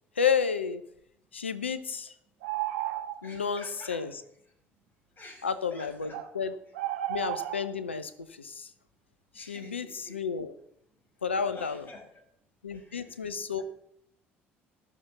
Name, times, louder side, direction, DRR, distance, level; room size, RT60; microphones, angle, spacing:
voice 1, 0.2-0.8 1.3-2.1 3.2-4.1 5.4-6.1 6.3-6.5 7.1-8.7 9.3-10.5 11.2-11.8 12.6-13.6, left 6 dB, 90° left, 11 dB, 0.6 m, -31 dB
sound 1, 2.4-3.3 6.1-6.3 6.7-7.6, right 14 dB, 70° right, 0.8 m, -32 dB
voice 2, 3.2-4.5 5.2-6.2 6.7-6.8 9.3-10.2 11.4-12.2 12.7-13.3 13.6-13.7, left 2 dB, 35° left, 1 dB, 5.2 m, -49 dB
12.0 x 6.7 x 7.2 m, 0.75 s
figure-of-eight pair, 55°, 6 cm